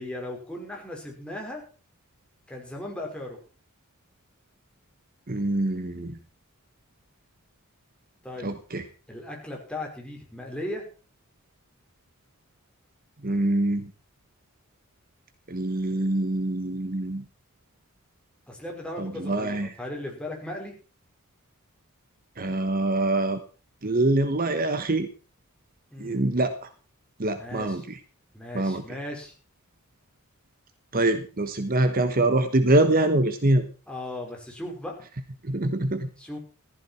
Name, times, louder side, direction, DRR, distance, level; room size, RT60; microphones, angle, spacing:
voice 1, 0.0-1.6 2.5-3.4 8.2-8.6 9.1-10.9 18.5-20.7 25.9-26.3 27.3-27.9 28.3-29.3 33.9-35.0 36.2-36.4, left 1 dB, 5° left, -1 dB, 5.3 m, -37 dB
voice 2, 5.3-6.2 8.4-8.8 13.2-13.9 15.5-17.2 19.0-19.7 22.4-23.4 23.8-25.1 26.0-26.5 27.2-28.0 28.5-28.8 30.9-33.6 35.4-36.1, right 2 dB, 40° right, 10 dB, 1.2 m, -24 dB
15.0 x 14.5 x 4.6 m, 0.36 s
head